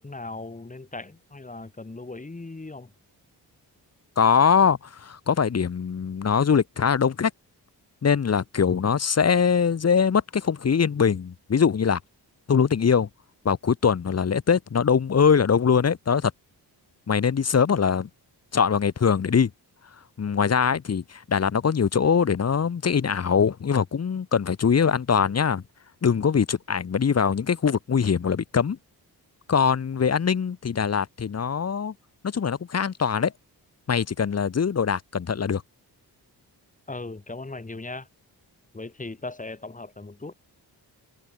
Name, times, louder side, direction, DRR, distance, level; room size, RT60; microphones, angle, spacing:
voice 1, 0.0-2.9 36.9-38.1 38.7-40.3, left 3 dB, 20° left, 5.5 m, -38 dB
voice 2, 4.2-7.3 8.0-12.0 12.5-13.1 13.4-16.3 17.1-18.1 18.5-19.5 20.2-25.6 26.0-28.8 29.5-31.9 32.2-33.3 33.9-35.6, left 6 dB, 40° left, 1.4 m, -22 dB
wide cardioid pair, 145°, 40 cm